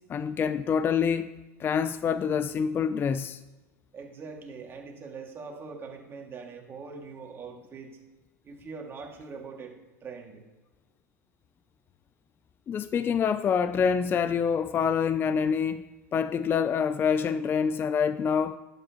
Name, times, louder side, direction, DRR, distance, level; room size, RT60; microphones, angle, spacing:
voice 1, 0.1-3.4 12.7-15.8 16.1-18.6, left 6 dB, 25° left, 0.4 m, -26 dB
voice 2, 3.9-8.0 8.4-9.8 10.0-10.4, right 4 dB, 25° right, 2.1 m, -42 dB
11.5 x 7.9 x 2.9 m
hypercardioid pair, 110°, 9 cm